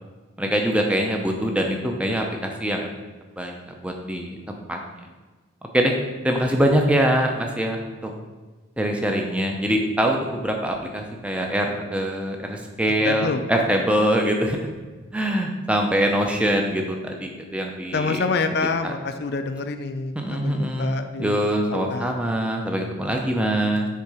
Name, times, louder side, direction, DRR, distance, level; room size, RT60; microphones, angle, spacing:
voice 1, 0.4-2.9 3.4-4.8 5.7-5.9 6.2-8.1 8.8-14.6 15.1-18.2 18.8-18.9 20.2-23.9, equal, 5° right, 2 dB, 0.6 m, -23 dB
voice 2, 13.0-13.4 17.9-21.4 21.7-22.2, left 4 dB, 50° left, 9 dB, 0.4 m, -27 dB
6.8 x 3.7 x 4.8 m, 1.3 s
head